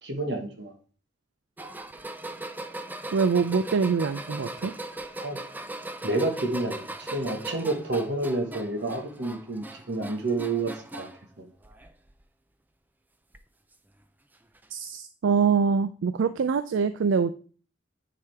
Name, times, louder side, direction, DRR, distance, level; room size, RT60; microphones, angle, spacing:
voice 1, 0.0-0.7 5.2-5.4 6.0-11.1, right 2 dB, 60° right, 4 dB, 1.5 m, -29 dB
sound 1, 1.6-11.2 11.6-12.2 13.3-13.4 14.6-14.7, right 2 dB, 10° right, 0.4 m, -39 dB
voice 2, 3.1-4.7 14.7-17.3, right 5 dB, 80° right, 12 dB, 0.4 m, -24 dB
9.5 x 5.0 x 3.5 m, 0.39 s
head